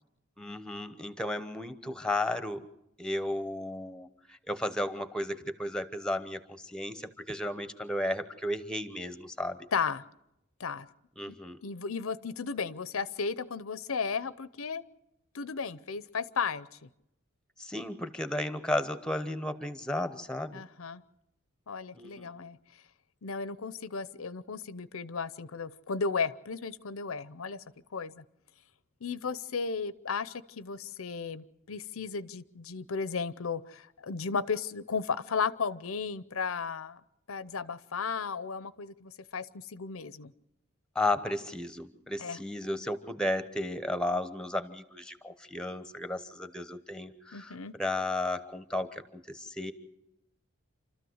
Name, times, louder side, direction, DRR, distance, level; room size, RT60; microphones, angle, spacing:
voice 1, 0.4-2.7 3.0-9.7 11.2-11.6 17.6-20.6 21.9-22.3 40.9-49.7, left 1 dB, 5° left, 12 dB, 1.0 m, -34 dB
voice 2, 9.7-10.0 10.6-10.9 11.3-11.4 11.6-14.8 15.3-16.7 20.5-21.0 21.7-22.6 23.2-27.6 27.9-28.2 29.0-37.0 37.3-40.3 42.2-42.4 47.3-47.7, left 5 dB, 75° left, 17 dB, 0.7 m, -34 dB
28.0 x 13.5 x 7.9 m, 0.86 s
head